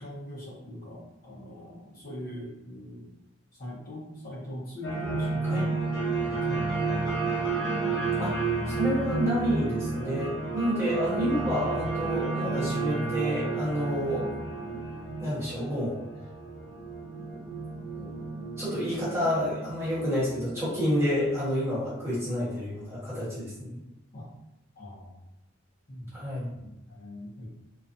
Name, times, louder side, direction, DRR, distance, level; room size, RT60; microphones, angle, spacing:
voice 1, 0.0-3.1 3.6-7.4 24.1-24.3 24.8-25.2 25.9-26.1 26.5-27.5, left 1 dB, 45° left, -7 dB, 0.8 m, -41 dB
sound 1, 4.8-21.2, right 4 dB, 65° left, 1.1 m, -31 dB
voice 2, 8.2-14.3 14.7-14.8 15.2-16.0 17.3-17.4 17.9-18.1 18.6-23.8 26.1-26.5, equal, 15° right, -11 dB, 1.3 m, -29 dB
2.5 x 2.3 x 2.6 m, 0.95 s
head